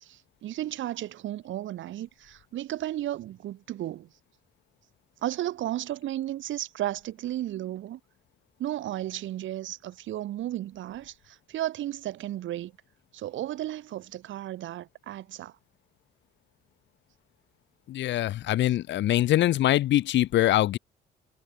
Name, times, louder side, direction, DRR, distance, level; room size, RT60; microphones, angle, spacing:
voice 1, 0.0-4.1 5.2-8.0 8.6-12.7 13.1-15.5, right 13 dB, 75° right, 1.1 m, -34 dB
voice 2, 17.9-20.8, left 14 dB, 65° left, 0.5 m, -23 dB
cardioid pair, 90°, 20 cm